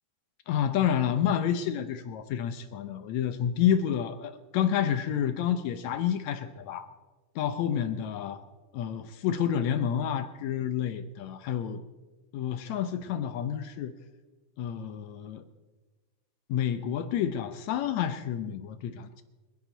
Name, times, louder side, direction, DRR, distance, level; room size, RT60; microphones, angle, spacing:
voice 1, 0.5-6.9 7.4-8.4 8.7-11.8 12.3-13.9 14.6-15.4 16.5-19.2, left 9 dB, 75° left, 10 dB, 1.7 m, -29 dB
29.5 x 10.5 x 4.0 m, 1.2 s
omnidirectional pair, 4.0 m